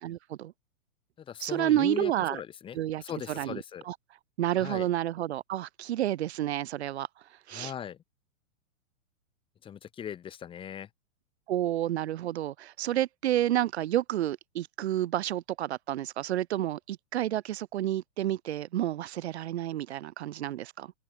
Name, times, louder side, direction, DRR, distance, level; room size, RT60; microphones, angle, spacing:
voice 1, 0.0-0.5 1.4-2.4 2.7-3.6 3.8-4.0 4.4-7.1 7.5-7.7 11.5-20.9, right 13 dB, 50° right, 2.3 m, -30 dB
voice 2, 1.3-3.8 4.6-4.9 7.5-8.0 9.6-10.9, left 9 dB, 10° left, 3.2 m, -39 dB
open air
hypercardioid pair, 170°, 42 cm